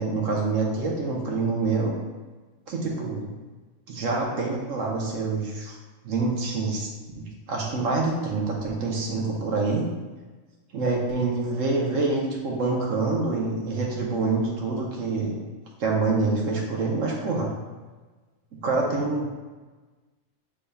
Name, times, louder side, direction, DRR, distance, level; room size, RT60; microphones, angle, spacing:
voice 1, 0.0-1.9 2.7-3.3 3.9-5.8 6.0-6.9 7.2-9.8 10.7-15.3 15.8-17.5 18.5-19.3, right 3 dB, 80° right, -2 dB, 1.2 m, -26 dB
6.6 x 3.5 x 2.3 m, 1.3 s
omnidirectional pair, 1.3 m